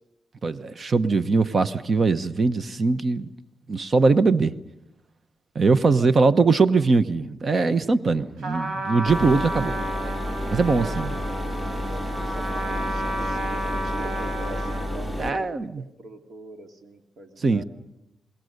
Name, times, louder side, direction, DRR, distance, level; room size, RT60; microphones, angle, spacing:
voice 1, 0.4-3.3 3.7-4.5 5.5-9.8 10.5-11.1 15.2-15.8 17.4-17.6, right 4 dB, 45° right, 1.0 m, -21 dB
Trumpet, 8.4-15.0, right 1 dB, 85° right, 4.2 m, -32 dB
sound 1, 9.1-15.3, left 1 dB, 15° right, 2.3 m, -30 dB
voice 2, 11.8-17.6, right 2 dB, 70° right, 2.5 m, -43 dB
28.0 x 20.5 x 6.7 m
cardioid pair, 95°, 0 cm